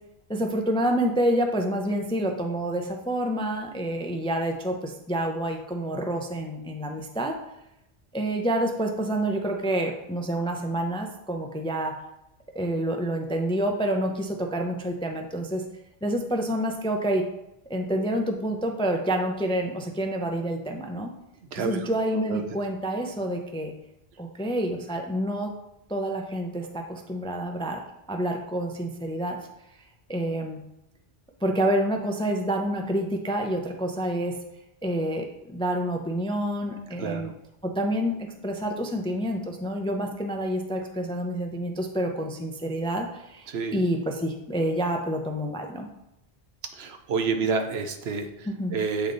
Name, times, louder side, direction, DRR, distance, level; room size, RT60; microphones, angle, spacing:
voice 1, 0.3-7.4 8.1-11.9 12.5-15.6 16.0-17.2 17.7-21.1 21.6-23.7 24.2-25.5 25.9-27.8 28.1-29.4 30.1-30.6 31.4-34.3 34.8-37.3 37.6-45.9 48.5-48.8, right 1 dB, 10° left, 3 dB, 0.4 m, -28 dB
voice 2, 21.4-21.9 22.1-22.4 37.0-37.3 43.5-43.8 46.7-49.1, right 5 dB, 75° right, 6 dB, 0.9 m, -29 dB
8.0 x 3.5 x 3.8 m, 0.86 s
omnidirectional pair, 1.1 m